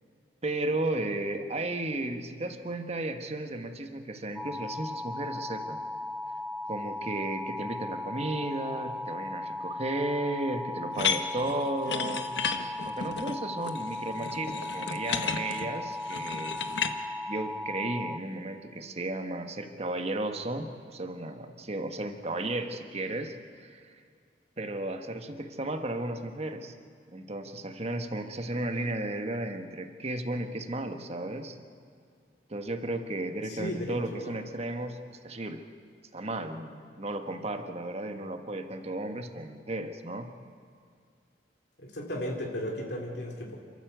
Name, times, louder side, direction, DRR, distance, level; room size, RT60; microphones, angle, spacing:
voice 1, 0.4-5.8 6.6-12.3 12.8-16.5 17.3-23.9 24.6-26.7 27.1-31.6 32.5-35.6 36.1-40.3, right 2 dB, 35° right, 6 dB, 1.4 m, -34 dB
sound 1, 4.4-18.2, left 2 dB, 5° left, 0.6 m, -37 dB
sound 2, 10.9-16.9, left 6 dB, 85° left, 1.2 m, -33 dB
voice 2, 33.4-34.4 41.8-43.5, equal, 70° left, 0 dB, 2.7 m, -35 dB
28.5 x 13.0 x 8.1 m, 2.3 s
head